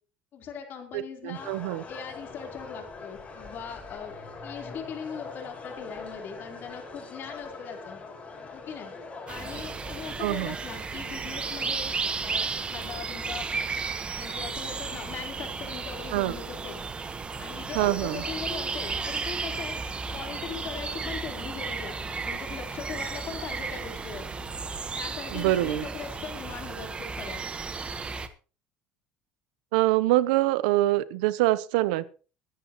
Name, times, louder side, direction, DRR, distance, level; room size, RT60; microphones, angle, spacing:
voice 1, 0.3-1.5 1.9-8.0 8.5-8.9 9.3-11.9 12.2-13.5 14.2-16.8 17.4-19.8 20.1-24.5 24.9-27.5, left 7 dB, 50° left, 3 dB, 4.0 m, -40 dB
voice 2, 0.9-1.8 10.2-10.5 16.1-16.3 17.8-18.2 25.3-25.9 29.7-32.1, right 16 dB, 85° right, 17 dB, 0.8 m, -25 dB
sound 1, 1.3-10.1, left 4 dB, 30° left, 5.3 m, -42 dB
sound 2, 9.3-28.3, right 4 dB, 25° right, 1.3 m, -34 dB
22.5 x 10.5 x 3.1 m, 0.36 s
supercardioid pair, 115°, 5 cm